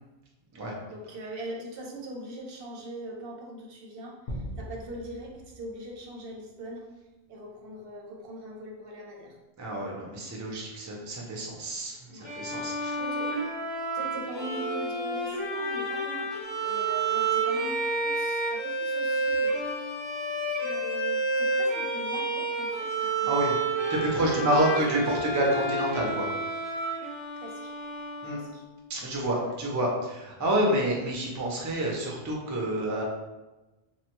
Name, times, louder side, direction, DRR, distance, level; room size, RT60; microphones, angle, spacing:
voice 1, 0.9-6.9 7.3-9.4 12.0-12.3 12.7-13.3 13.9-19.6 20.5-23.5 24.1-24.6 25.0-25.2 27.4-27.7 28.2-28.6 29.4-29.5, right 1 dB, 65° right, 0 dB, 0.7 m, -41 dB
sound 1, 4.3-6.8, equal, 55° left, 0.6 m, -41 dB
voice 2, 9.6-13.0 23.3-23.5 23.9-26.3 28.2-28.4 28.9-33.0, right 1 dB, 25° right, -2 dB, 0.4 m, -28 dB
Bowed string instrument, 12.2-28.8, right 2 dB, 75° left, 1.2 m, -30 dB
3.3 x 2.2 x 2.9 m, 1.1 s
omnidirectional pair, 1.1 m